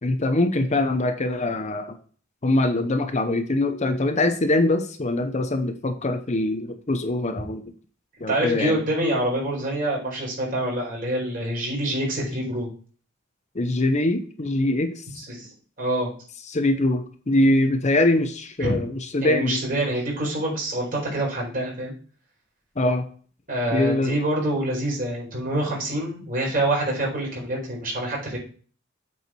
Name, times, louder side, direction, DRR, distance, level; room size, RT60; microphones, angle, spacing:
voice 1, 0.0-1.9 2.4-7.6 8.2-8.8 13.5-15.0 16.5-19.6 22.8-23.0 23.7-24.2, left 2 dB, 35° left, 7 dB, 0.7 m, -23 dB
voice 2, 8.3-12.7 15.1-15.5 15.8-16.1 18.6-18.8 19.2-21.9 23.5-28.4, right 1 dB, 45° right, -3 dB, 4.4 m, -26 dB
8.3 x 4.7 x 4.5 m, 0.42 s
head